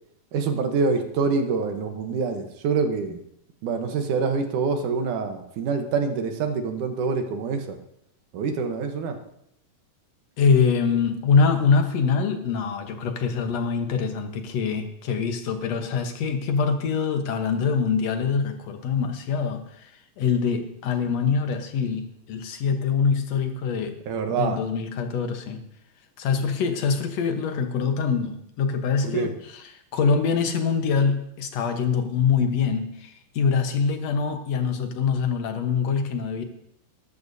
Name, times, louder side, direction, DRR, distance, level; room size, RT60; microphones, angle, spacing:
voice 1, 0.3-3.2 3.6-7.8 8.3-9.2 24.1-24.6 29.0-29.3, right 4 dB, 70° right, 5 dB, 2.5 m, -26 dB
voice 2, 10.4-19.9 20.2-24.0 24.4-25.6 26.2-36.4, left 5 dB, 60° left, 6 dB, 2.0 m, -24 dB
19.0 x 13.5 x 2.7 m, 0.73 s
omnidirectional pair, 3.8 m